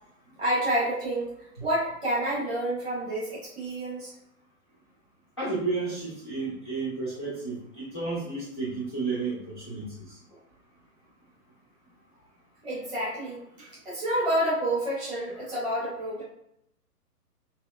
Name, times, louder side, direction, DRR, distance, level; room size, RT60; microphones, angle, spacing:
voice 1, 0.4-1.3 1.6-4.1 12.6-16.2, right 1 dB, 10° right, -9 dB, 0.7 m, -29 dB
voice 2, 5.4-10.2, right 3 dB, 20° left, -8 dB, 0.4 m, -32 dB
2.8 x 2.8 x 2.3 m, 0.76 s
figure-of-eight pair, 125°, 47 cm